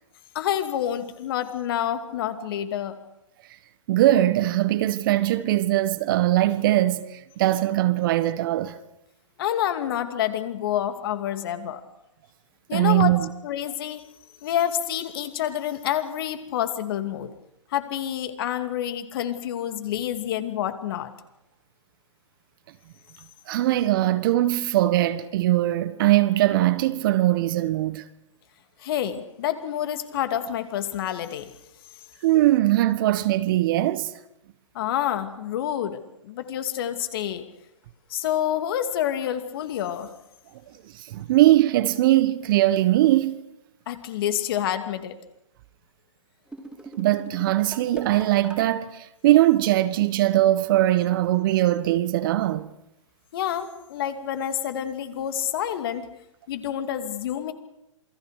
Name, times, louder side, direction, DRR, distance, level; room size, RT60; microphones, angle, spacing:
voice 1, 0.3-3.0 9.4-11.8 12.7-13.2 13.4-14.1 14.4-17.3 17.7-21.1 28.8-31.5 34.7-37.5 38.1-40.1 43.9-45.2 53.3-56.1 56.5-57.5, left 11 dB, 45° left, 2.6 m, -28 dB
voice 2, 3.9-8.8 12.7-13.3 23.5-28.0 32.2-34.1 41.0-43.4 47.0-52.7, right 15 dB, 45° right, 1.5 m, -21 dB
sound 1, 46.5-48.7, right 2 dB, 5° right, 3.4 m, -41 dB
28.0 x 21.5 x 6.6 m
figure-of-eight pair, 125°, 16 cm